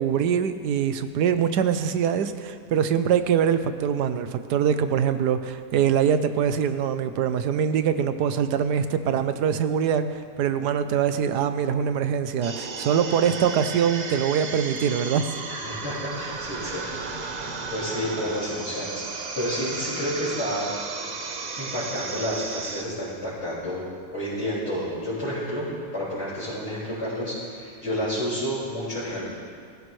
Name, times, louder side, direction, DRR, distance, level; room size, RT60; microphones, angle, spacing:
voice 1, 0.0-15.2, right 8 dB, 75° right, 10 dB, 1.3 m, -23 dB
sound 1, 12.4-22.8, right 4 dB, 40° right, 0.6 m, -34 dB
voice 2, 15.5-16.8 17.1-20.7 21.6-23.8 24.1-25.7 25.9-29.2, equal, 40° left, -12 dB, 5.5 m, -30 dB
23.5 x 15.5 x 3.2 m, 2.1 s
omnidirectional pair, 1.8 m